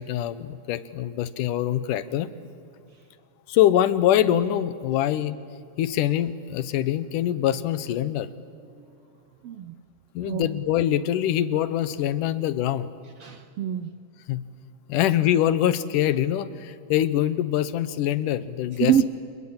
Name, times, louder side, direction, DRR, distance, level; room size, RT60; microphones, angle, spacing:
voice 1, 0.0-2.3 3.5-5.4 5.8-8.3 10.2-12.9 14.3-14.5 14.9-19.1, left 11 dB, 85° left, 15 dB, 2.5 m, -24 dB
voice 2, 9.4-9.8 10.2-10.5 13.2-13.9 18.8-19.0, right 9 dB, 80° right, 11 dB, 1.3 m, -25 dB
28.0 x 21.5 x 8.8 m, 2.5 s
omnidirectional pair, 3.6 m